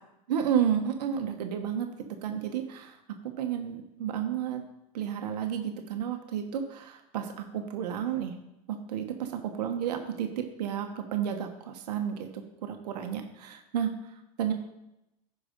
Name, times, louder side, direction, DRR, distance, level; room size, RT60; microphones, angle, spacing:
voice 1, 0.3-4.6 4.9-8.3 8.7-13.9 14.4-14.5, right 9 dB, 80° right, 5 dB, 1.2 m, -32 dB
10.0 x 5.2 x 5.2 m, 0.88 s
hypercardioid pair, 105°, 20 cm